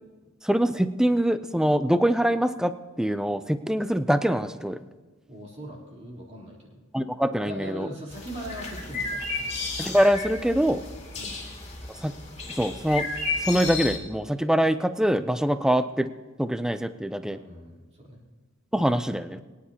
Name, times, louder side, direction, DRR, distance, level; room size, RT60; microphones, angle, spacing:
voice 1, 0.4-2.7 3.0-4.8 6.9-7.9 9.8-10.8 12.0-12.1 12.5-13.1 13.4-16.1 16.4-17.4 18.7-19.4, equal, 5° right, 11 dB, 0.4 m, -24 dB
voice 2, 5.3-6.8 7.4-9.5 11.1-11.4 17.2-18.2, equal, 30° right, -3 dB, 3.4 m, -40 dB
sound 1, 8.1-14.0, left 3 dB, 30° left, 2.5 m, -33 dB
22.5 x 10.0 x 2.8 m, 1.3 s
head